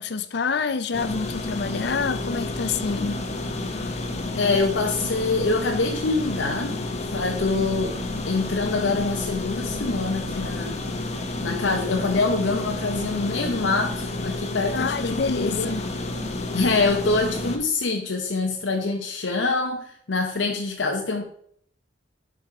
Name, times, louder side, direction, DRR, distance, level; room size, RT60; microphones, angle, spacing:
voice 1, 0.0-3.3 14.7-15.8, left 5 dB, 65° left, 0.5 m, -27 dB
sound 1, 0.9-17.6, left 2 dB, 35° left, 0.9 m, -30 dB
voice 2, 4.4-6.8 7.1-8.0 8.3-10.8 11.4-15.8 16.5-21.2, left 3 dB, 90° left, 0.8 m, -25 dB
5.3 x 4.9 x 5.8 m
head